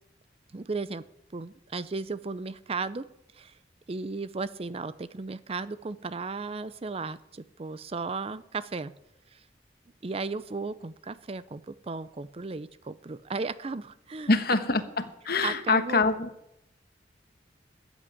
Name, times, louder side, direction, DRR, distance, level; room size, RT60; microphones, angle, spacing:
voice 1, 0.5-1.0 1.3-3.1 3.3-3.5 3.9-8.9 9.3-9.4 10.0-14.3 15.4-16.0, right 4 dB, 30° right, 16 dB, 0.5 m, -35 dB
voice 2, 14.3-16.3, left 3 dB, 55° left, 10 dB, 1.3 m, -25 dB
13.0 x 8.1 x 9.7 m, 0.81 s
head